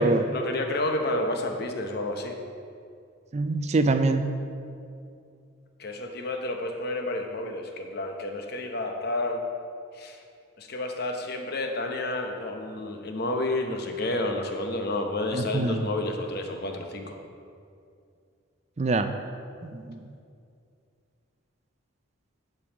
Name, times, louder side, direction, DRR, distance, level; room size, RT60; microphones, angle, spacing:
voice 1, 0.3-2.3 5.8-9.4 9.9-10.2 10.6-17.1, left 2 dB, 50° left, 3 dB, 0.8 m, -30 dB
voice 2, 3.3-4.3 15.3-15.9 18.8-19.1 19.6-20.0, right 2 dB, 30° right, 9 dB, 0.4 m, -24 dB
9.9 x 5.4 x 5.0 m, 2.4 s
head